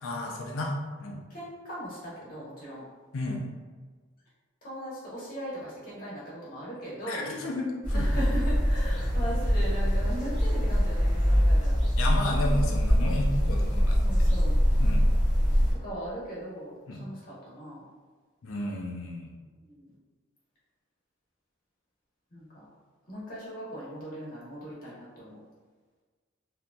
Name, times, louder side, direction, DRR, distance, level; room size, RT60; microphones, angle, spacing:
voice 1, 0.0-1.2 3.1-3.5 7.1-8.1 12.0-14.1 14.7-15.0 16.9-17.0 18.4-19.3, left 1 dB, 85° left, 0 dB, 0.5 m, -32 dB
voice 2, 1.3-2.8 4.6-7.3 7.9-11.8 14.0-14.5 15.8-17.8 19.6-19.9 22.3-22.7 23.1-25.4, equal, 45° left, -8 dB, 1.0 m, -38 dB
sound 1, 7.8-15.7, equal, 20° right, 0.9 m, -24 dB
2.8 x 2.6 x 2.2 m, 1.4 s
head